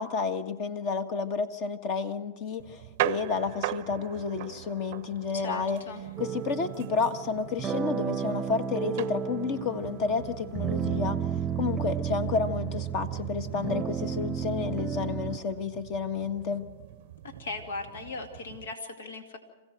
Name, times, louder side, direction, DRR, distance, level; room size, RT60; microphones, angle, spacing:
voice 1, 0.0-5.8 6.2-16.7, left 5 dB, 45° left, 10 dB, 1.6 m, -31 dB
sound 1, 2.6-18.7, right 16 dB, 55° right, 0.6 m, -40 dB
voice 2, 5.3-6.0 17.4-19.4, left 3 dB, 80° left, 6 dB, 2.4 m, -38 dB
sound 2, 6.2-15.4, right 8 dB, 20° right, 0.8 m, -33 dB
27.0 x 16.0 x 7.7 m, 1.2 s
hypercardioid pair, 125°, 0 cm